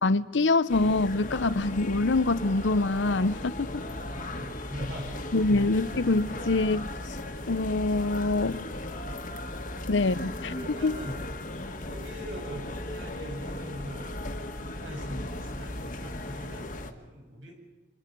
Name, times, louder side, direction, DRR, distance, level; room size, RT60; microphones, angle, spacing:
voice 1, 0.0-3.8 5.3-6.8 7.5-8.6 9.9-10.5 10.8-11.0, left 3 dB, 80° left, 0.8 m, -25 dB
sound 1, 0.7-16.9, left 1 dB, 45° left, 1.6 m, -37 dB
voice 2, 3.6-5.5 6.3-6.6 10.5-11.5 11.8-14.1 14.6-17.5, right 1 dB, 75° right, 7.5 m, -42 dB
27.0 x 26.5 x 5.4 m
head